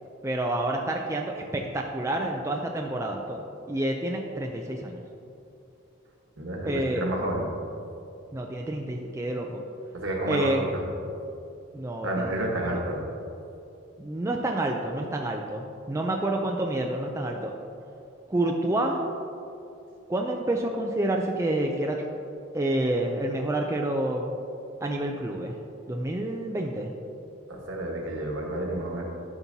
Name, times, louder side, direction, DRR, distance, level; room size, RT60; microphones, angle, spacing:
voice 1, 0.2-5.0 6.7-7.1 8.3-9.6 10.3-10.6 11.7-12.3 12.6-12.7 14.0-17.5 18.3-19.0 20.1-22.0 22.5-24.3 24.8-25.6 25.9-26.9, right 1 dB, 15° right, 1 dB, 0.3 m, -28 dB
voice 2, 6.4-7.4 9.9-10.8 12.0-13.0 27.5-29.0, right 1 dB, 65° right, 0 dB, 1.2 m, -30 dB
10.5 x 5.9 x 2.7 m, 2.7 s
head